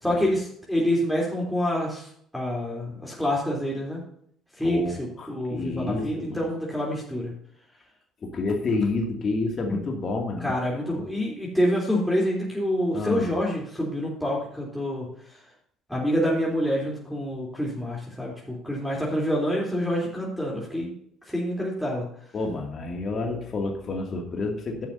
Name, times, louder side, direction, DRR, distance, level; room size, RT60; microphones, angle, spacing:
voice 1, 0.0-4.0 4.6-7.3 10.4-15.1 15.9-20.9 21.3-22.0, equal, 5° left, -4 dB, 3.6 m, -27 dB
voice 2, 4.6-6.5 8.2-10.5 10.8-11.1 12.9-13.3 22.3-24.9, left 3 dB, 35° left, 2 dB, 2.5 m, -29 dB
12.0 x 11.5 x 2.8 m, 0.66 s
figure-of-eight pair, 50°, 0 cm